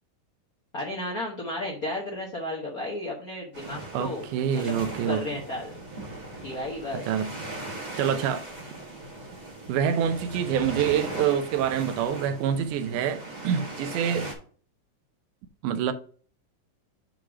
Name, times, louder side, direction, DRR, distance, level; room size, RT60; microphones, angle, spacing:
voice 1, 0.7-4.2 4.5-4.8 5.1-5.7 6.4-7.1, left 1 dB, 55° left, 1.0 m, -33 dB
sound 1, 3.5-14.3, right 2 dB, 25° right, 1.0 m, -39 dB
voice 2, 3.9-5.3 7.1-7.3 8.0-8.5 9.7-14.3 15.6-15.9, right 8 dB, 90° right, 2.2 m, -26 dB
6.6 x 3.9 x 5.9 m
omnidirectional pair, 3.5 m